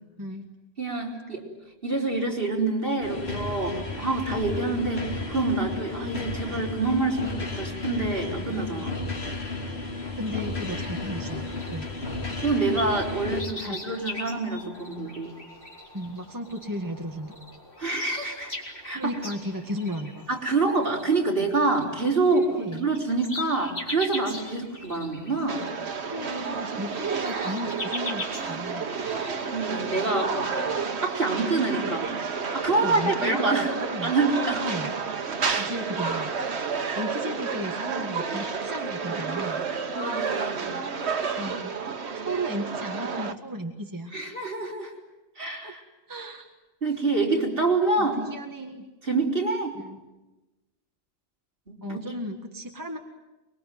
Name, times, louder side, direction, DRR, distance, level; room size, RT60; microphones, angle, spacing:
voice 1, 0.2-0.5 10.1-11.9 13.7-13.8 15.9-17.4 18.9-20.3 22.3-22.9 26.0-28.9 32.8-34.1 34.6-34.9 35.6-36.3 36.9-39.7 41.4-41.7 42.1-44.1 45.6-45.7 46.1-46.5 48.0-48.9 49.8-50.0 51.8-53.0, equal, 20° right, 3 dB, 1.8 m, -35 dB
voice 2, 0.8-1.4 1.8-8.9 12.4-15.4 17.8-18.5 18.8-19.1 20.3-25.6 29.5-30.5 31.0-32.1 32.5-33.7 34.0-34.6 35.4-35.7 39.9-40.8 44.1-44.9 45.4-45.8 46.8-48.2 49.0-49.7 51.7-52.0, right 3 dB, 60° right, -1 dB, 4.7 m, -26 dB
sound 1, 3.0-13.4, left 3 dB, 75° left, 2.9 m, -33 dB
sound 2, 10.1-29.7, left 2 dB, 55° left, 4.3 m, -41 dB
sound 3, 25.5-43.3, right 5 dB, 85° right, 1.6 m, -30 dB
25.0 x 22.0 x 9.4 m, 1.1 s
omnidirectional pair, 1.1 m